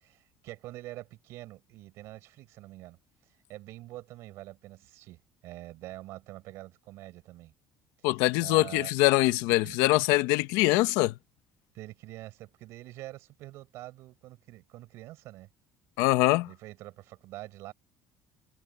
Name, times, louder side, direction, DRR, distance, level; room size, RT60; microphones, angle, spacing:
voice 1, 0.0-3.0 3.5-7.5 8.0-8.1 8.4-8.9 9.3-10.0 11.7-15.5 16.4-17.7, right 17 dB, 65° right, 6.1 m, -45 dB
voice 2, 8.0-11.1 16.0-16.5, left 19 dB, 90° left, 1.2 m, -23 dB
cardioid pair, 140°, 5 cm